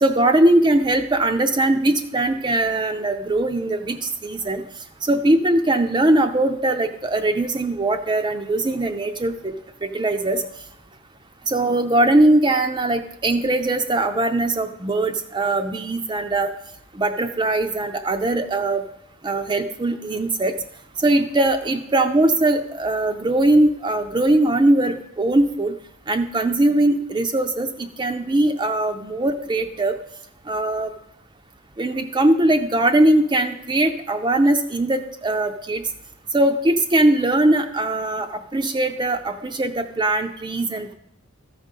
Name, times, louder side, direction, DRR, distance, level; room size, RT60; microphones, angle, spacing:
voice 1, 0.0-4.6 5.0-9.5 9.8-10.4 11.5-16.5 16.9-18.8 19.2-20.5 21.0-25.7 26.1-29.9 30.5-30.9 31.8-35.8 36.3-40.9, right 1 dB, 25° right, 6 dB, 0.5 m, -20 dB
14.0 x 5.2 x 5.4 m, 0.76 s
head